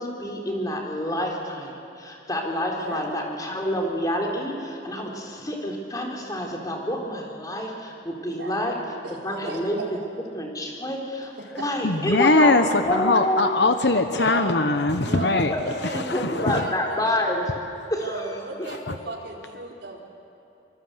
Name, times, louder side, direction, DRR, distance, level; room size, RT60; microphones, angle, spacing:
voice 1, 0.0-8.8 9.2-9.8 10.4-13.5 15.2-17.6 17.9-18.2, left 1 dB, 20° left, 0 dB, 4.1 m, -28 dB
voice 2, 2.8-3.1 5.0-5.2 8.2-8.7 9.0-9.2 9.4-9.6 13.4-13.5 14.1-14.6 15.0-17.1 18.0-20.0, right 2 dB, 75° right, -2 dB, 4.4 m, -35 dB
voice 3, 11.8-15.5 15.9-16.7 18.9-19.0, left 2 dB, 70° left, 8 dB, 1.1 m, -21 dB
26.0 x 24.0 x 8.1 m, 2.9 s
head